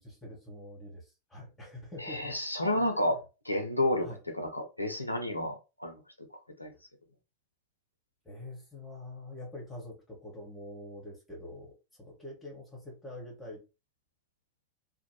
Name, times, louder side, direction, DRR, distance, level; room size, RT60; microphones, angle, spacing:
voice 1, 0.0-2.4 2.6-2.9 3.5-3.7 4.0-4.2 8.2-11.7 12.0-13.6, left 1 dB, 10° left, 1.2 m, -45 dB
voice 2, 2.0-3.2 3.5-4.1 4.3-6.0 6.6-6.7, left 1 dB, 85° left, 0.5 m, -30 dB
2.5 x 2.1 x 2.9 m
figure-of-eight pair, 90°, 0 cm